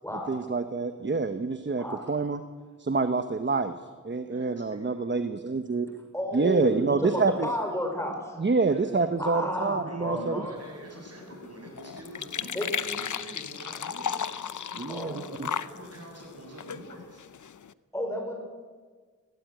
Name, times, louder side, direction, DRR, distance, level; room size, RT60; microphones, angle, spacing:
voice 1, 0.3-2.4 2.8-3.7 4.0-6.0 6.3-7.5 8.4-10.5 14.8-15.5, right 4 dB, 40° right, 9 dB, 1.0 m, -27 dB
voice 2, 4.3-4.9 8.7-9.1 9.9-17.2, right 1 dB, 55° right, 1 dB, 7.8 m, -46 dB
voice 3, 6.1-8.4 9.2-10.6 12.5-12.8 14.9-15.3 17.9-18.4, left 1 dB, 10° left, 3 dB, 5.3 m, -32 dB
sound 1, 10.6-17.7, left 7 dB, 75° left, 0.7 m, -36 dB
21.5 x 17.5 x 9.2 m, 1.5 s
wide cardioid pair, 100°, 30 cm